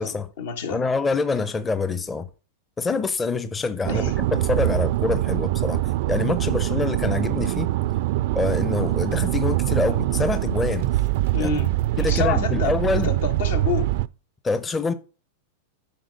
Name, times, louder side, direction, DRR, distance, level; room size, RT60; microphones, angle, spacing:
voice 1, 0.0-0.8 3.8-4.1 11.3-12.8 13.0-13.9, left 6 dB, 75° left, 1.6 m, -28 dB
voice 2, 0.7-2.3 2.8-5.8 6.1-7.7 8.3-10.9 11.4-11.5 12.0-13.1 14.4-14.9, left 4 dB, 15° left, 0.6 m, -25 dB
sound 1, 3.8-14.1, right 16 dB, 60° right, 0.4 m, -23 dB
10.5 x 4.4 x 5.2 m
hypercardioid pair, 130°, 0 cm